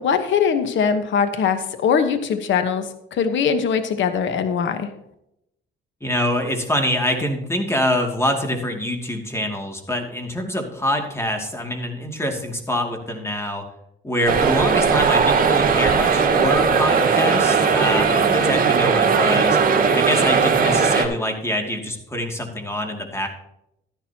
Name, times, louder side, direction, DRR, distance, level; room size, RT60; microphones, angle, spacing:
voice 1, 0.0-4.9, left 6 dB, 70° left, 9 dB, 1.1 m, -21 dB
voice 2, 6.0-13.6 14.0-19.6 19.9-23.3, left 1 dB, 15° left, 3 dB, 2.4 m, -25 dB
sound 1, 14.3-21.1, right 5 dB, 45° right, 2.0 m, -18 dB
13.0 x 11.0 x 2.9 m, 0.80 s
cardioid pair, 90°, 20 cm